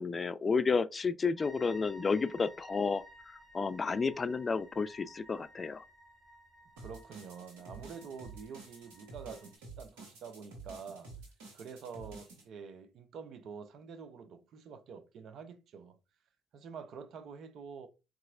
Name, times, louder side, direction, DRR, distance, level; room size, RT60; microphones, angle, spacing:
voice 1, 0.0-5.8, left 4 dB, 40° left, 0.3 m, -31 dB
sound 1, 1.4-9.5, equal, 10° right, 1.8 m, -56 dB
voice 2, 6.8-11.1 11.5-16.0 16.5-17.9, right 6 dB, 65° right, 0.5 m, -47 dB
sound 2, 6.8-12.4, right 3 dB, 85° right, 1.1 m, -50 dB
4.0 x 2.4 x 2.5 m
hypercardioid pair, 50°, 0 cm